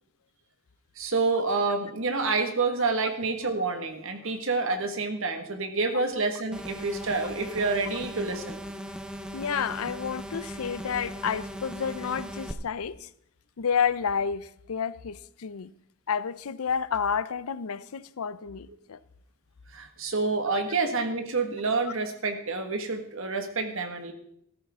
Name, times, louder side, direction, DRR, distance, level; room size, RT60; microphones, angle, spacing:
voice 1, 1.0-8.6 19.7-24.1, right 3 dB, 60° right, 1.7 m, -28 dB
sound 1, 6.5-12.5, equal, 5° right, 0.7 m, -38 dB
voice 2, 9.3-13.1 13.6-15.7 16.1-19.0 21.9-22.0, left 7 dB, 75° left, 0.5 m, -30 dB
14.5 x 13.5 x 3.7 m
head